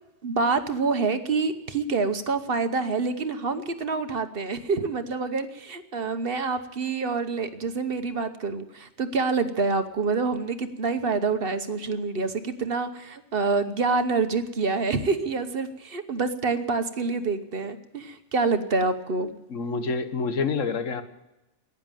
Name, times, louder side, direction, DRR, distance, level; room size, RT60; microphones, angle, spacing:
voice 1, 0.2-19.3, right 4 dB, 50° right, 9 dB, 1.1 m, -27 dB
voice 2, 19.5-21.0, left 4 dB, 85° left, 10 dB, 1.5 m, -27 dB
15.5 x 10.0 x 9.1 m, 0.96 s
omnidirectional pair, 1.3 m